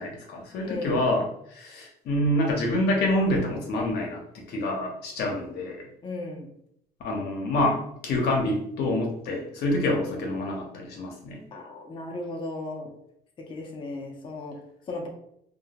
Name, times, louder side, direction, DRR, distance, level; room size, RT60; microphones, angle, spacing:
voice 1, 0.0-5.9 7.0-11.4, left 1 dB, 70° left, 0 dB, 0.7 m, -27 dB
voice 2, 0.6-1.0 6.0-6.5 11.5-12.9 13.5-14.6 14.9-15.1, left 2 dB, 30° left, 1 dB, 0.5 m, -35 dB
2.2 x 2.1 x 2.8 m, 0.74 s
cardioid pair, 110°, 17 cm